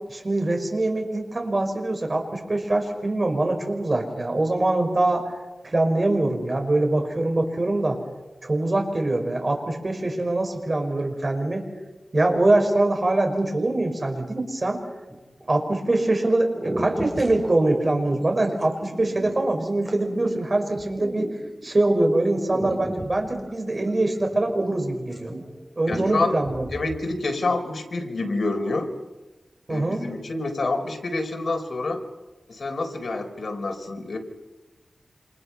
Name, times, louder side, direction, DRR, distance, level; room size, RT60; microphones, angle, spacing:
voice 1, 0.1-5.3 5.6-8.0 8.4-11.6 12.1-14.8 15.5-21.3 21.6-25.3 25.8-26.7 29.7-30.1, right 2 dB, 35° right, 3 dB, 5.4 m, -23 dB
sound 1, 15.1-15.6 16.2-16.3 16.5-21.8 22.3-24.8 25.0-25.6 25.9-26.9, right 1 dB, 15° right, 6.0 m, -35 dB
voice 2, 25.9-26.3 26.7-28.9 29.7-32.0 32.5-34.2, left 2 dB, 65° left, 3 dB, 4.2 m, -27 dB
28.5 x 28.0 x 5.8 m, 1.1 s
wide cardioid pair, 105°, 0 cm